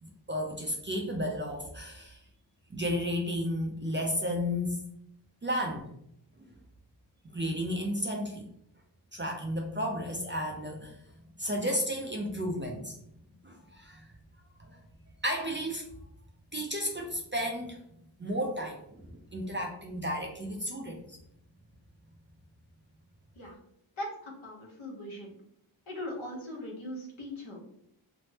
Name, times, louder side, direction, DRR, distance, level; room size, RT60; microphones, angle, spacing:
voice 1, 0.0-2.2 2.7-4.8 5.4-5.9 7.2-8.5 9.1-11.0 11.4-13.0 13.4-14.0 14.6-14.8 15.2-15.8 16.5-17.8 18.2-21.2, equal, 25° right, 0 dB, 0.4 m, -33 dB
voice 2, 24.0-25.3 25.9-27.6, left 1 dB, 70° left, -2 dB, 1.1 m, -40 dB
3.2 x 2.0 x 2.8 m, 0.72 s
wide cardioid pair, 85°, 50 cm